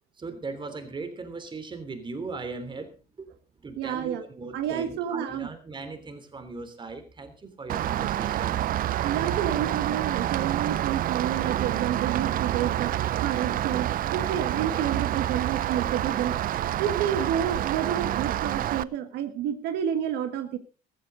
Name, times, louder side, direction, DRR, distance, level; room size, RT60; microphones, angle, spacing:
voice 1, 0.2-3.3 3.6-9.1 14.7-14.8, right 3 dB, 30° right, 9 dB, 3.2 m, -39 dB
voice 2, 3.8-4.2 4.5-5.5 9.0-12.9 13.2-16.4 16.8-20.6, right 9 dB, 85° right, 9 dB, 1.5 m, -29 dB
Rain, 7.7-18.8, right 12 dB, 55° right, 0.6 m, -28 dB
14.5 x 14.5 x 3.9 m, 0.34 s
cardioid pair, 110°, 17 cm